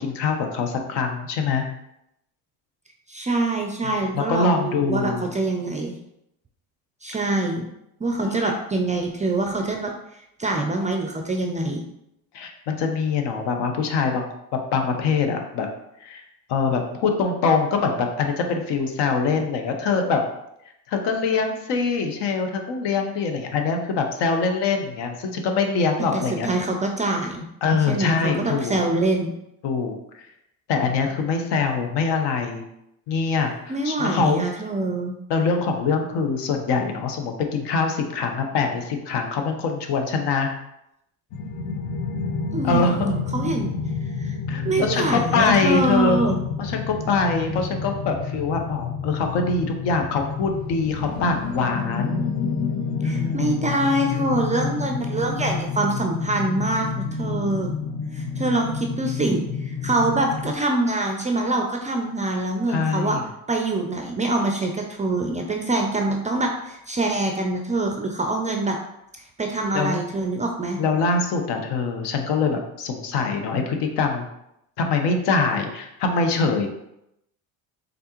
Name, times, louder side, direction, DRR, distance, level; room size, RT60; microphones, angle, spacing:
voice 1, 0.0-1.6 3.8-5.2 8.2-8.5 12.3-14.3 14.7-15.7 16.0-16.2 16.5-20.2 20.9-26.5 27.6-28.8 29.6-30.3 30.7-32.6 33.1-34.4 35.3-40.5 42.6-43.1 44.5-46.2 46.6-52.2 53.0-53.5 62.7-63.2 69.7-70.0 70.8-74.2 74.8-76.7, left 4 dB, 65° left, 4 dB, 0.9 m, -24 dB
voice 2, 3.1-6.0 7.0-7.7 8.0-9.9 10.4-11.8 26.1-27.4 27.9-29.3 33.7-35.1 42.5-43.7 44.2-44.4 44.6-46.4 53.0-57.7 58.1-63.2 63.5-68.8 69.4-70.8, right 2 dB, 15° right, 2 dB, 0.4 m, -25 dB
sound 1, 41.3-60.5, left 5 dB, 40° left, 0.5 m, -29 dB
3.9 x 3.3 x 3.0 m, 0.82 s
supercardioid pair, 85°, 45 cm